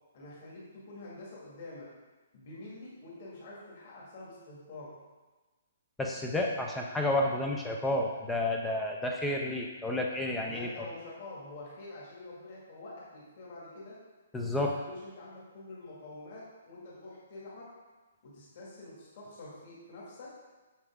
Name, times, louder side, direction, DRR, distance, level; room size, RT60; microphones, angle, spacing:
voice 1, 0.1-1.9 2.3-5.0 10.4-14.0 14.6-17.7 18.2-20.3, left 2 dB, 35° left, -6 dB, 2.0 m, -47 dB
voice 2, 6.0-10.7 14.3-14.8, left 1 dB, 5° left, 0 dB, 0.4 m, -31 dB
7.1 x 6.8 x 3.6 m, 1.2 s
hypercardioid pair, 180°, 0 cm